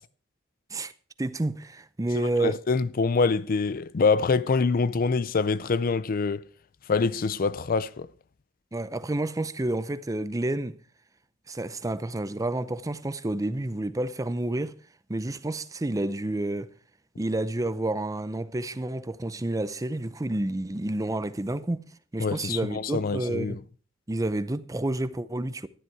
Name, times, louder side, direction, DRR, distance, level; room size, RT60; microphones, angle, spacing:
voice 1, 1.2-2.6 8.7-10.8 11.5-14.8 15.1-16.7 17.2-21.9 22.1-23.6 24.1-25.7, right 1 dB, 15° right, 0.5 m, -29 dB
voice 2, 2.4-6.5 6.9-8.1 22.2-23.6, left 4 dB, 45° left, 0.4 m, -25 dB
12.5 x 10.5 x 4.7 m
head